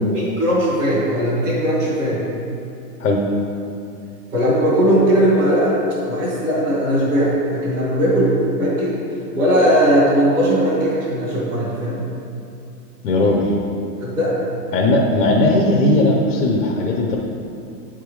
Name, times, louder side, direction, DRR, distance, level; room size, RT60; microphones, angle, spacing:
voice 1, 0.1-2.2 4.3-5.8 6.1-8.9 9.3-12.0 14.0-14.5, equal, 10° right, -12 dB, 1.0 m, -18 dB
voice 2, 13.0-13.5 14.7-17.2, left 2 dB, 60° left, -2 dB, 0.9 m, -17 dB
9.0 x 3.7 x 4.7 m, 2.6 s
hypercardioid pair, 170°, 50 cm